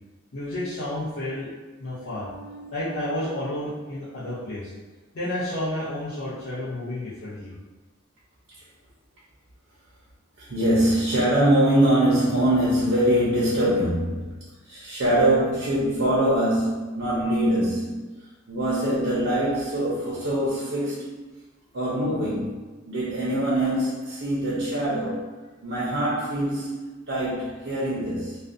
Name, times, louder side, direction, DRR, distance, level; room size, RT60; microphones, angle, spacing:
voice 1, 0.3-1.5 1.8-2.3 2.7-4.7 5.1-7.5, left 1 dB, 75° left, -10 dB, 0.6 m, -31 dB
voice 2, 2.1-3.2 10.4-14.3 14.6-18.1 18.5-21.2 21.7-22.6 22.9-25.2 25.6-26.8 27.1-28.4, right 1 dB, 70° right, -7 dB, 0.6 m, -23 dB
2.4 x 2.1 x 2.5 m, 1.2 s
head